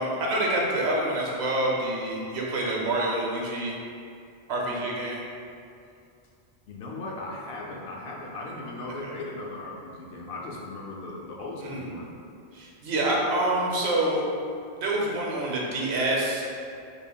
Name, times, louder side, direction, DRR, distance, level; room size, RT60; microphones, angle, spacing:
voice 1, 0.0-3.7 4.5-5.2 9.0-9.1 11.6-11.9 12.5-14.2 14.8-16.5, right 1 dB, 75° right, -2 dB, 0.9 m, -27 dB
voice 2, 6.7-12.1, left 2 dB, 70° left, -3 dB, 0.8 m, -37 dB
5.3 x 2.4 x 2.2 m, 2.4 s
omnidirectional pair, 1.1 m